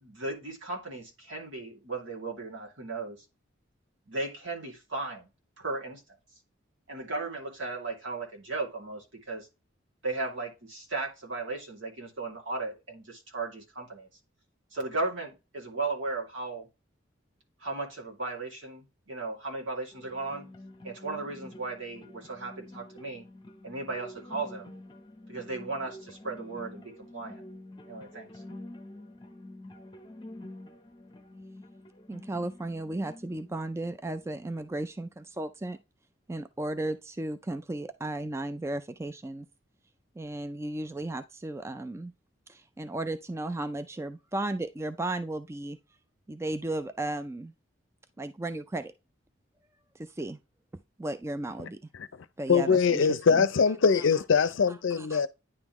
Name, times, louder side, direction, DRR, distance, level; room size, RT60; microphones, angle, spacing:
voice 1, 0.0-3.2 4.1-5.3 5.6-6.0 6.9-9.5 10.0-14.1 14.7-16.7 17.6-20.4 20.8-23.2 23.6-24.7 25.3-27.4 27.9-28.3, right 3 dB, 75° right, 2.5 m, -36 dB
sound 1, 19.9-34.9, left 1 dB, 25° left, 0.7 m, -48 dB
voice 2, 32.1-35.8 36.3-39.5 40.2-42.1 42.5-45.8 46.3-47.5 48.2-48.9 49.9-50.4 51.0-51.8 52.4-53.0 53.3-53.5 55.0-55.2, right 2 dB, 15° right, 0.3 m, -35 dB
voice 3, 51.9-55.3, left 5 dB, 75° left, 0.5 m, -23 dB
9.8 x 3.7 x 3.0 m
head